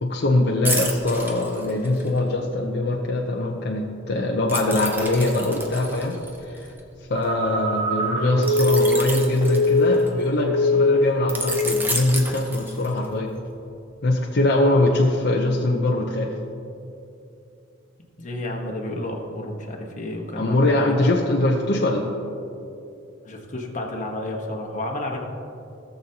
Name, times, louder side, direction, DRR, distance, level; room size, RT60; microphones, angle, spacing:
voice 1, 0.0-6.2 6.5-6.6 7.1-13.3 14.0-16.3 20.3-22.1, left 2 dB, 55° left, 0 dB, 0.7 m, -22 dB
sound 1, 0.6-2.2 4.5-7.2 8.4-10.3 11.3-13.1 13.6-13.8, right 2 dB, 10° right, 0.8 m, -30 dB
Telephone, 7.1-10.2 10.4-11.1 11.5-11.8, left 2 dB, 35° right, 2.5 m, -22 dB
voice 2, 18.2-20.8 23.2-25.2, left 1 dB, 40° left, 0 dB, 1.3 m, -31 dB
18.0 x 6.9 x 2.9 m, 2.6 s
head